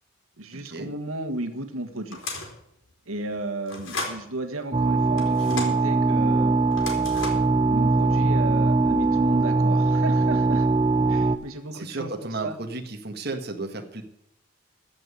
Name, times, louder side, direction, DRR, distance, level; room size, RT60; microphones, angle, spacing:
voice 1, 0.4-2.2 3.1-6.6 7.7-10.7 11.1-12.1 12.4-12.6, right 2 dB, 90° right, 5 dB, 1.5 m, -33 dB
sound 1, 2.1-2.6 3.7-4.2 5.2-5.8 6.7-7.5, left 3 dB, 70° left, 3.5 m, -34 dB
sound 2, 4.7-11.4, right 3 dB, 25° right, 0.6 m, -21 dB
voice 2, 11.7-14.0, right 3 dB, 50° right, 4 dB, 1.5 m, -33 dB
15.0 x 5.6 x 9.9 m, 0.77 s
head